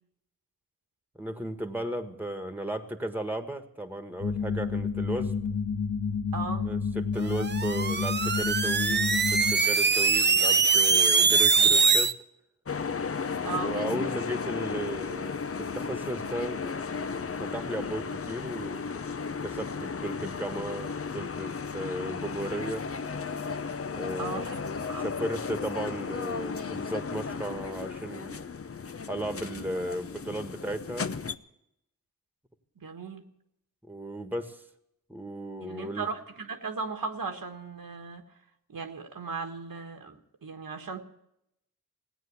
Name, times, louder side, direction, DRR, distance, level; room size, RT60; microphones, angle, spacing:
voice 1, 1.2-5.4 6.6-12.2 13.5-16.8 17.0-18.8 19.4-22.8 23.9-24.5 25.0-28.4 29.1-31.1 33.9-34.6 35.1-36.1, right 1 dB, 5° right, 8 dB, 1.6 m, -35 dB
sound 1, 4.2-9.5, left 5 dB, 85° left, 1.4 m, -30 dB
voice 2, 6.3-6.7 13.4-14.1 24.2-25.1 26.5-26.7 32.8-33.2 35.6-38.2 38.7-41.1, right 4 dB, 70° right, 5 dB, 1.6 m, -37 dB
sound 2, 7.3-12.1, right 5 dB, 30° right, 0.7 m, -23 dB
sound 3, 12.7-31.3, left 5 dB, 40° left, 0.7 m, -35 dB
17.0 x 9.2 x 8.6 m, 0.79 s
cardioid pair, 55°, 36 cm